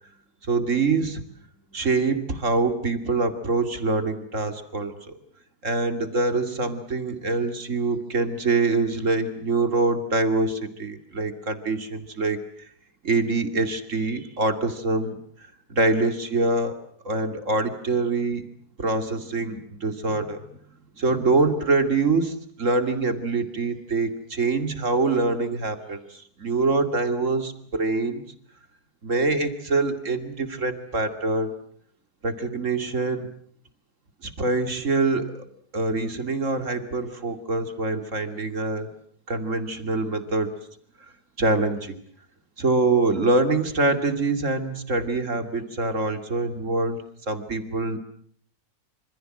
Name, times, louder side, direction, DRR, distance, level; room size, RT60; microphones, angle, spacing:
voice 1, 0.5-1.2 1.7-5.2 5.6-12.4 13.0-15.2 15.7-16.7 17.0-18.5 18.8-20.4 21.0-28.2 29.0-31.5 32.2-33.3 34.2-35.3 35.7-38.9 39.3-40.5 41.4-42.0 42.6-48.0, right 3 dB, 55° right, 8 dB, 2.9 m, -25 dB
27.0 x 26.5 x 7.8 m, 0.63 s
omnidirectional pair, 1.6 m